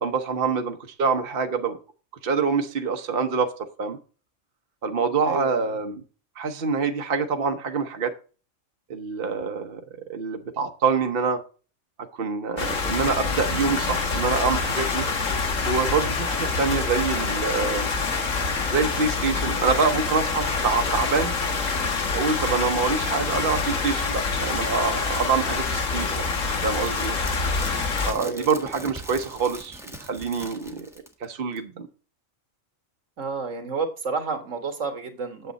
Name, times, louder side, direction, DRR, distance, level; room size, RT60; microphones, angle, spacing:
voice 1, 0.0-1.8 2.2-3.5 3.8-4.0 4.8-6.0 6.4-8.1 8.9-9.8 10.1-11.4 12.1-15.1 15.7-17.9 18.7-21.3 22.1-26.2 26.6-27.2 28.1-30.9 31.2-31.9, right 5 dB, 50° right, 6 dB, 1.1 m, -25 dB
voice 2, 5.2-5.7 28.1-28.5 33.2-35.5, right 4 dB, 75° right, 7 dB, 1.8 m, -30 dB
sound 1, 12.6-28.1, left 4 dB, 85° left, 1.8 m, -26 dB
sound 2, 26.7-31.2 31.6-31.7, equal, ahead, 1.4 m, -41 dB
9.1 x 7.4 x 4.0 m, 0.36 s
omnidirectional pair, 1.3 m